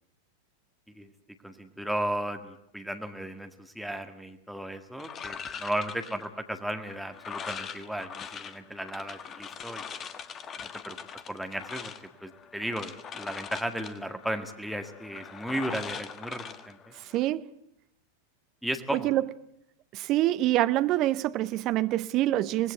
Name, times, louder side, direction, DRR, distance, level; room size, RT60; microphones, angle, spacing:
voice 1, 1.4-9.8 10.6-11.0 11.3-11.9 12.2-16.8 18.6-19.2, right 1 dB, ahead, 1.9 m, -35 dB
sound 1, 5.0-17.3, left 7 dB, 25° left, 1.5 m, -42 dB
voice 2, 17.1-17.5 18.9-19.3 19.9-22.7, right 15 dB, 35° right, 0.9 m, -26 dB
25.0 x 20.0 x 8.4 m
figure-of-eight pair, 90°, 0 cm